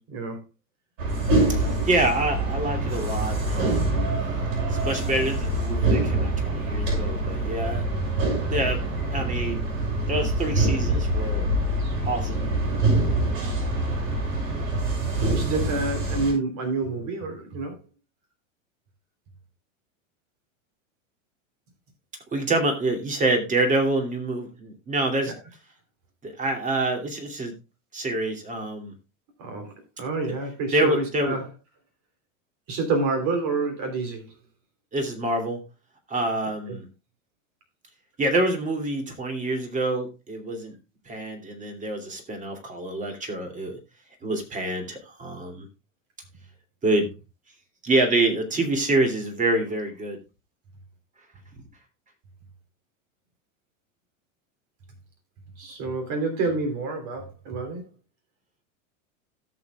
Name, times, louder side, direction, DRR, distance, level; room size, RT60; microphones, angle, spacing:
voice 1, 0.1-0.4 15.3-17.8 29.4-31.5 32.7-34.3 36.7-36.8 55.6-57.8, right 3 dB, 45° right, 3.4 m, -28 dB
sound 1, 1.0-16.3, right 2 dB, 75° right, 6.9 m, -25 dB
voice 2, 1.5-4.0 4.7-7.8 8.5-8.8 9.1-9.6 10.1-11.5 12.0-12.4 22.3-25.3 26.2-27.5 27.9-28.9 30.7-31.4 34.9-35.6 36.1-36.9 38.2-40.7 41.0-43.8 44.2-45.7 46.8-47.1 47.8-50.2, right 2 dB, 20° right, 2.7 m, -26 dB
17.0 x 7.0 x 2.3 m
supercardioid pair, 125°, 39 cm